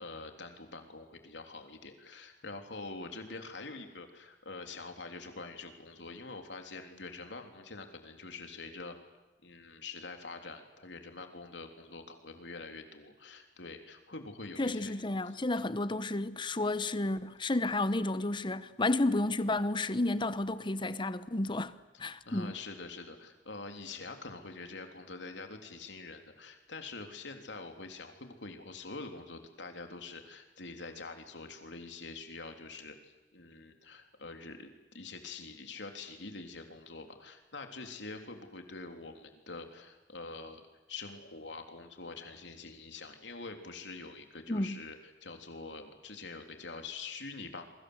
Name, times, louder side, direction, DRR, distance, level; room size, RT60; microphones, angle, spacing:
voice 1, 0.0-9.0 9.4-14.9 15.3-15.6 22.0-47.7, left 3 dB, 85° left, 3.4 m, -45 dB
voice 2, 14.6-22.5 44.5-44.8, left 2 dB, 25° left, 1.0 m, -31 dB
28.0 x 24.0 x 8.1 m
head